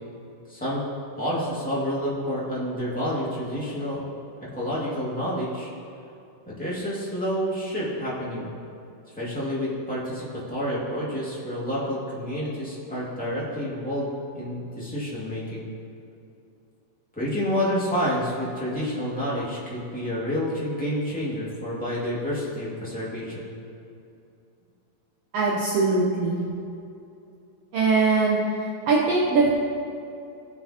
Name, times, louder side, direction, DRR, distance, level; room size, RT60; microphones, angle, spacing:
voice 1, 0.5-0.8 1.2-4.0 4.5-5.7 6.4-8.5 9.2-15.7 17.1-23.5, equal, 5° left, -8 dB, 1.2 m, -29 dB
voice 2, 25.3-26.4 27.7-28.4 28.9-29.5, right 3 dB, 70° right, -4 dB, 1.5 m, -21 dB
18.0 x 6.3 x 2.9 m, 2.6 s
omnidirectional pair, 3.9 m